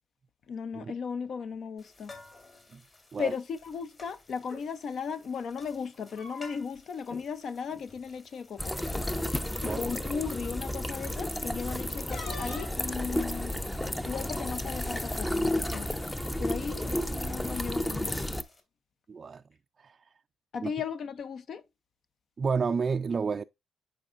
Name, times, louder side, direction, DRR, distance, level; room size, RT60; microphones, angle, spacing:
voice 1, 0.5-2.1 3.2-8.8 9.6-13.5 14.0-15.9 16.4-18.3 20.5-21.6, left 6 dB, 60° left, 0.6 m, -36 dB
sound 1, 1.8-18.6, left 3 dB, 35° left, 2.7 m, -55 dB
sound 2, 4.4-4.6 5.9-6.8 7.1-7.2 7.6-7.9 8.8-8.9 9.5-9.8 12.1-12.8, left 3 dB, 80° left, 2.4 m, -44 dB
sound 3, 8.6-18.4, left 1 dB, 10° left, 0.6 m, -32 dB
voice 2, 19.1-19.4 19.8-20.0 20.6-20.7 22.4-23.4, right 5 dB, 40° right, 0.3 m, -30 dB
9.7 x 4.5 x 2.5 m
cardioid pair, 90°, 0 cm